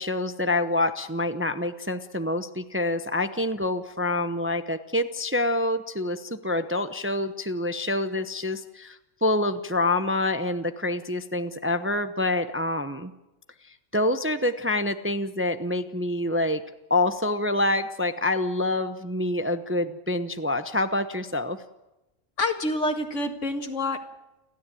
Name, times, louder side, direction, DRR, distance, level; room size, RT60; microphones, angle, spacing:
voice 1, 0.0-13.1 13.7-16.6 16.9-21.6, left 2 dB, 10° right, 10 dB, 0.8 m, -26 dB
voice 2, 22.4-24.0, left 2 dB, 65° left, 7 dB, 2.3 m, -27 dB
29.5 x 13.0 x 9.2 m, 1.0 s
omnidirectional pair, 1.3 m